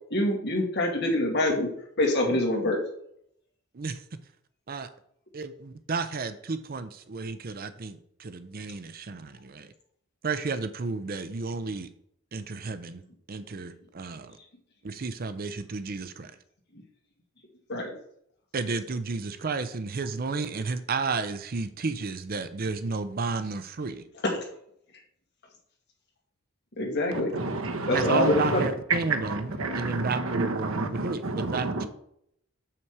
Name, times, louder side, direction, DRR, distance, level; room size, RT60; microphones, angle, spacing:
voice 1, 0.1-1.7 2.0-2.8 17.7-17.9 24.2-24.4 26.8-27.3 27.9-28.6, left 1 dB, 55° left, 0 dB, 2.2 m, -25 dB
voice 2, 5.3-9.7 10.2-11.9 12.3-13.0 13.3-14.4 14.8-16.3 18.5-24.0 27.9-31.9, right 4 dB, 45° right, 11 dB, 0.5 m, -32 dB
voice 3, 27.1-31.9, right 3 dB, 80° right, 6 dB, 1.1 m, -30 dB
7.0 x 5.8 x 4.6 m, 0.70 s
head